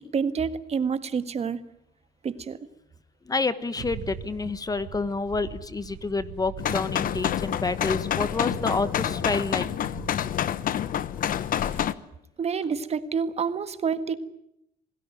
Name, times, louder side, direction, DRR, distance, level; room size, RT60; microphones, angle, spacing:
voice 1, 0.1-1.6 2.2-2.6 12.4-14.2, right 6 dB, 40° right, 12 dB, 1.7 m, -28 dB
voice 2, 3.3-9.6, left 3 dB, 20° left, 14 dB, 1.2 m, -28 dB
sound 1, 3.7-10.3, right 8 dB, 80° right, 3.9 m, -42 dB
sound 2, 6.6-11.9, left 10 dB, 55° left, 1.1 m, -28 dB
27.5 x 18.5 x 9.2 m, 0.78 s
cardioid pair, 110°, 17 cm